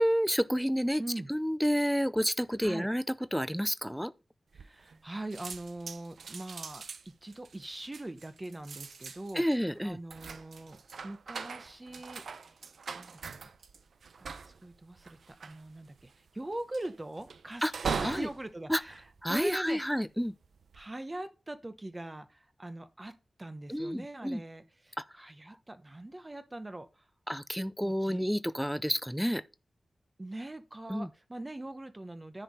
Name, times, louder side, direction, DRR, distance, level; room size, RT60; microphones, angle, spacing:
voice 1, 0.0-1.0 1.3-3.0 3.3-4.1 9.4-10.0 17.6-17.7 18.0-18.3 18.7-18.8 19.2-20.3 23.7-24.4 27.3-29.4 30.9-31.1, equal, ahead, 0.5 m, -29 dB
voice 2, 1.0-1.3 2.6-2.9 4.5-9.4 9.8-12.6 12.9-13.5 14.2-19.8 20.7-23.1 23.4-27.0 27.8-28.2 30.2-32.4, right 1 dB, 20° right, 0.9 m, -42 dB
sound 1, 4.5-5.1 5.3-19.9 20.4-20.8, right 5 dB, 85° right, 0.7 m, -42 dB
10.0 x 4.7 x 5.3 m
wide cardioid pair, 120°, 0 cm